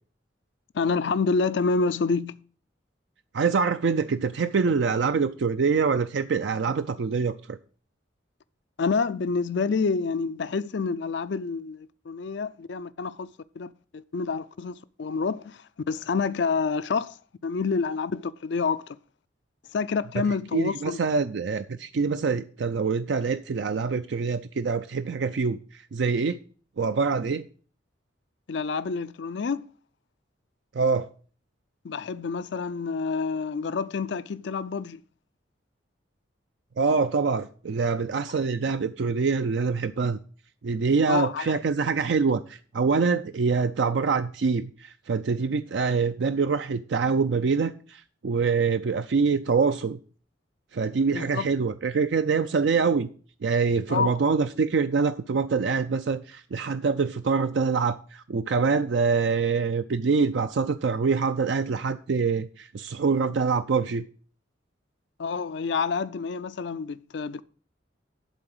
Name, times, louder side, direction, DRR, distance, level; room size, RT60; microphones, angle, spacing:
voice 1, 0.7-2.4 8.8-19.0 19.7-21.0 28.5-29.7 31.8-35.0 38.3-38.4 41.1-41.6 51.1-51.5 53.9-54.3 65.2-67.4, left 4 dB, 65° left, 0.4 m, -28 dB
voice 2, 3.3-7.6 20.5-26.4 26.8-27.4 30.7-31.1 36.8-40.2 40.6-50.0 50.7-53.1 53.4-64.0, right 5 dB, 65° right, 0.4 m, -25 dB
11.5 x 4.0 x 7.6 m
head